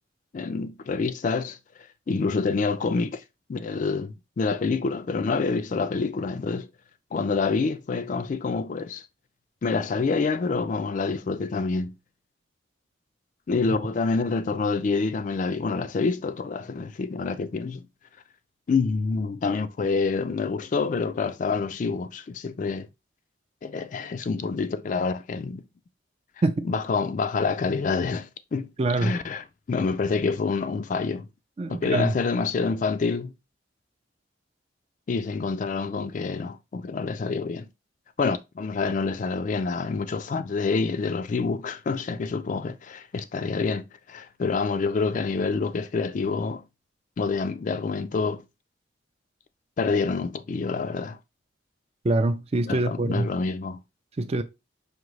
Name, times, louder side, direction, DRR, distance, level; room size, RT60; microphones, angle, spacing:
voice 1, 0.3-1.6 2.1-3.2 3.5-6.7 7.1-9.0 9.6-11.9 13.5-17.8 18.7-22.9 23.6-25.6 26.6-28.7 29.0-31.3 31.7-33.3 35.1-37.7 38.2-46.6 47.2-48.4 49.8-51.2 52.7-53.8, left 4 dB, 40° left, 0.3 m, -27 dB
voice 2, 28.8-29.2 31.6-32.1 52.0-53.3 54.2-54.4, right 2 dB, 30° right, 0.4 m, -24 dB
4.9 x 2.7 x 3.1 m
head